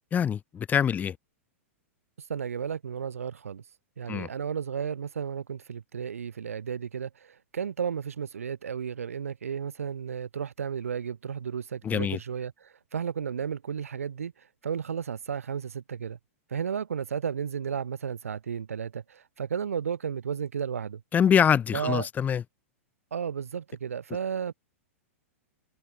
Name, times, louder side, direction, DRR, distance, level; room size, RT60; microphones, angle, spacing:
voice 1, 0.1-1.2 4.1-4.3 11.8-12.2 21.1-22.4, left 8 dB, 20° left, 1.6 m, -24 dB
voice 2, 2.2-3.6 4.0-16.2 16.5-21.0 21.7-22.1 23.1-24.5, right 7 dB, 85° right, 1.7 m, -33 dB
hypercardioid pair, 115°, 7 cm